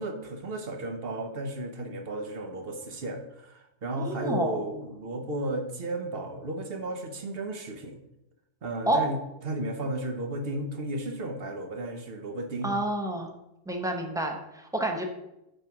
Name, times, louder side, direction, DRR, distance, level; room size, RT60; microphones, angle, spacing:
voice 1, 0.0-8.0 8.6-12.7, right 1 dB, 50° right, 5 dB, 1.1 m, -34 dB
voice 2, 4.0-4.6 8.9-9.0 12.6-13.3 13.7-15.0, right 1 dB, 5° right, 2 dB, 0.8 m, -29 dB
9.0 x 3.3 x 5.8 m, 0.88 s
omnidirectional pair, 1.3 m